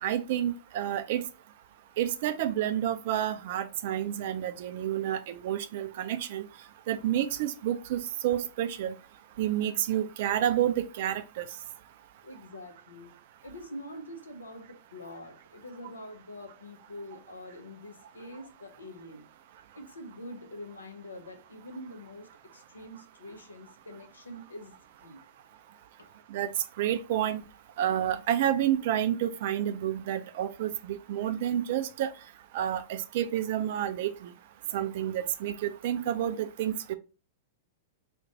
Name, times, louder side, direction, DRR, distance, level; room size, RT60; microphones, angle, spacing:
voice 1, 0.0-1.2 2.0-6.5 6.9-8.9 9.4-11.4 26.3-26.5 26.8-27.4 27.8-32.1 32.5-34.1 34.7-37.0, right 11 dB, 50° right, 0.3 m, -29 dB
voice 2, 12.2-13.2 13.4-19.3 19.7-24.8 25.0-25.2 26.0-26.2, left 1 dB, 75° left, 0.5 m, -45 dB
2.5 x 2.2 x 3.9 m
figure-of-eight pair, 100°, 0 cm